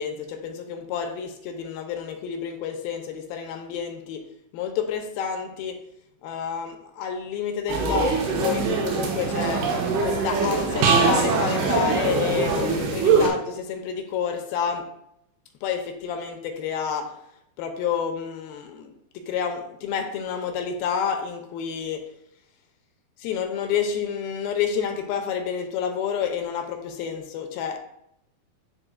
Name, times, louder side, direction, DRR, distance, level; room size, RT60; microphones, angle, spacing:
voice 1, 0.0-4.2 4.5-5.8 6.2-9.7 10.0-14.9 15.6-17.1 17.6-22.0 23.2-27.8, left 7 dB, 85° left, 4 dB, 2.5 m, -29 dB
sound 1, 7.7-13.3, right 4 dB, 90° right, 2.9 m, -22 dB
9.8 x 4.6 x 2.3 m, 0.76 s
omnidirectional pair, 4.3 m